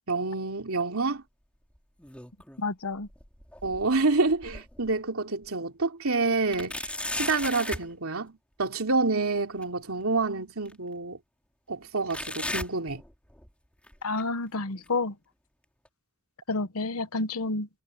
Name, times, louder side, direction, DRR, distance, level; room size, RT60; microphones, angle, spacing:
voice 1, 0.1-1.2 3.6-6.9 7.2-8.3 8.6-11.2 11.7-13.0, right 3 dB, 75° right, 3.0 m, -28 dB
sound 1, 1.7-2.7 3.0-4.9 5.4-5.5 6.5-7.9 9.6-9.7 10.6-10.7 12.1-13.5 13.8-14.2 14.9-15.0 15.8-15.9, left 1 dB, 5° left, 3.2 m, -37 dB
voice 2, 2.6-3.1 14.0-15.1 16.5-17.7, left 3 dB, 90° left, 1.1 m, -29 dB
head